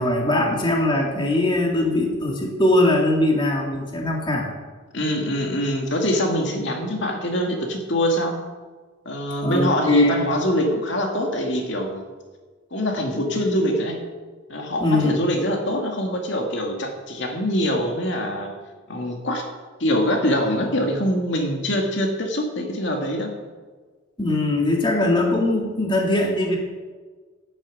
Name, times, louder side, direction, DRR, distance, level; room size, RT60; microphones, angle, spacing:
voice 1, 0.0-4.5 9.4-10.2 14.8-15.3 24.2-26.6, left 1 dB, 25° left, 0 dB, 2.1 m, -21 dB
voice 2, 4.9-8.4 9.1-12.0 12.7-14.0 14.5-18.5 18.9-19.4 19.8-23.3, left 1 dB, 60° left, 2 dB, 2.2 m, -23 dB
12.0 x 8.9 x 8.5 m, 1.4 s
head